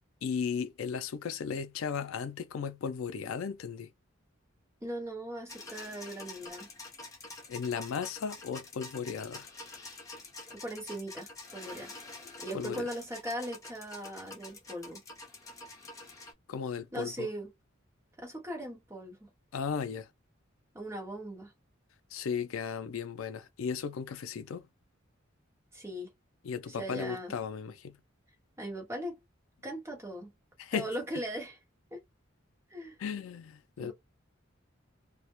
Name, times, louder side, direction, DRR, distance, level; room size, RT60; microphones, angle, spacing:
voice 1, 0.2-3.9 7.5-9.5 12.5-12.8 16.5-17.3 19.5-20.1 22.1-24.7 26.4-28.0 30.6-30.8 33.0-33.9, left 6 dB, 85° left, 0.4 m, -35 dB
voice 2, 4.8-6.7 10.5-11.9 12.4-15.0 16.9-17.5 18.2-19.3 20.7-21.5 25.7-26.1 26.7-27.3 28.6-29.2 29.6-30.3 30.7-31.6 31.9-32.0 32.7-33.0 33.8-33.9, equal, 15° right, 0.9 m, -39 dB
sound 1, 5.5-16.3, left 2 dB, 15° left, 0.6 m, -47 dB
2.2 x 2.1 x 2.9 m
head